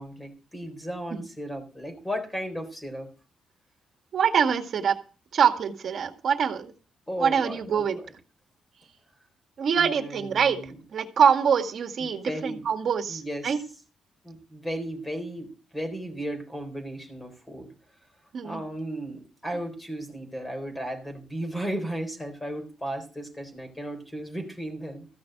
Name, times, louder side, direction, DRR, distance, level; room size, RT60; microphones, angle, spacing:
voice 1, 0.0-3.1 7.1-8.1 9.7-10.8 12.0-12.7 13.1-13.6 14.2-17.7 18.4-25.1, right 1 dB, 10° left, 6 dB, 3.9 m, -35 dB
voice 2, 4.1-5.0 5.3-6.7 7.2-8.0 9.6-10.6 10.9-13.6 18.3-18.6, right 7 dB, 50° right, 7 dB, 1.8 m, -24 dB
14.5 x 6.1 x 7.8 m, 0.36 s
cardioid pair, 135°, 0 cm